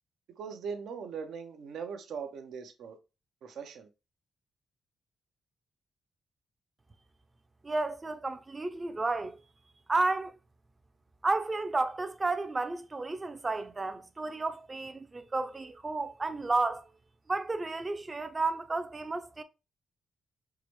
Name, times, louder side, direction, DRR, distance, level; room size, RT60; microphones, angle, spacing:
voice 1, 0.4-3.0 3.4-3.9, right 6 dB, 80° right, 0.6 m, -40 dB
voice 2, 7.6-9.4 9.9-10.4 11.2-16.9 17.3-19.4, right 3 dB, 25° right, 0.5 m, -32 dB
4.7 x 2.1 x 3.1 m
cardioid pair, 75°, 0 cm